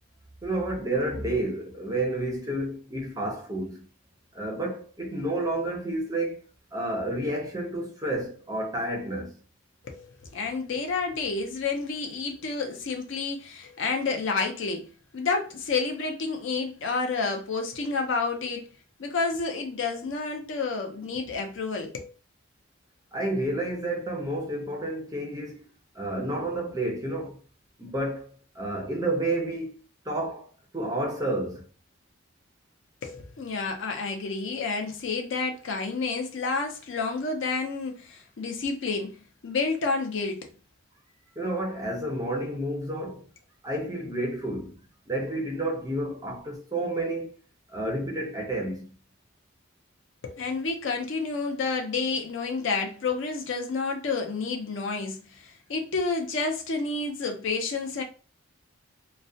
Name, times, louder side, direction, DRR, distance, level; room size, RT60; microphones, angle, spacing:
voice 1, 0.4-3.8 4.3-6.4 6.7-9.4 23.1-25.6 25.9-27.4 27.8-29.8 30.0-30.5 30.7-31.6 41.3-43.3 43.6-44.8 45.1-47.3 47.7-48.9, right 1 dB, 15° right, 0.4 m, -30 dB
voice 2, 9.8-18.7 19.0-22.1 33.0-39.1 39.4-40.5 50.2-58.0, left 4 dB, 60° left, 0.5 m, -30 dB
2.3 x 2.1 x 2.6 m
head